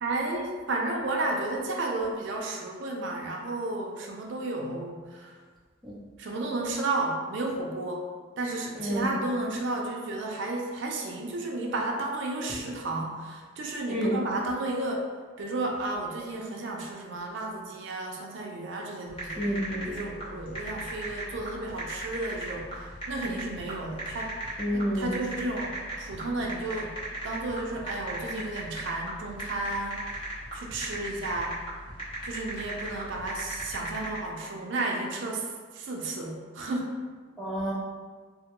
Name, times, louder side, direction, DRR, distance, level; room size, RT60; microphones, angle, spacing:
voice 1, 0.0-5.3 6.2-8.0 8.4-15.0 15.4-19.5 19.9-24.3 24.7-26.9 27.2-30.2 30.5-31.6 32.2-35.4 35.7-37.0, right 2 dB, 65° right, 0 dB, 0.4 m, -32 dB
voice 2, 8.8-9.1 13.9-14.2 19.4-19.9 24.6-25.2 37.4-37.7, equal, ahead, -8 dB, 0.5 m, -29 dB
sound 1, 19.1-34.2, right 1 dB, 30° left, 0.8 m, -38 dB
3.4 x 2.1 x 2.9 m, 1.5 s
head